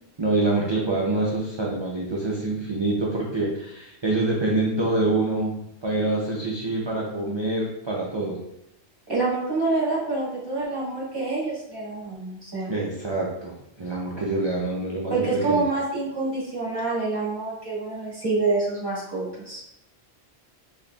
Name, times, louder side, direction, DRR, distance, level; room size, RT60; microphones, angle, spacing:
voice 1, 0.2-5.5 5.8-8.4 12.7-15.6, right 2 dB, 40° right, -4 dB, 0.4 m, -26 dB
voice 2, 9.1-12.7 15.1-19.6, right 3 dB, 20° right, -5 dB, 1.2 m, -27 dB
4.0 x 3.3 x 2.3 m, 0.84 s
omnidirectional pair, 1.1 m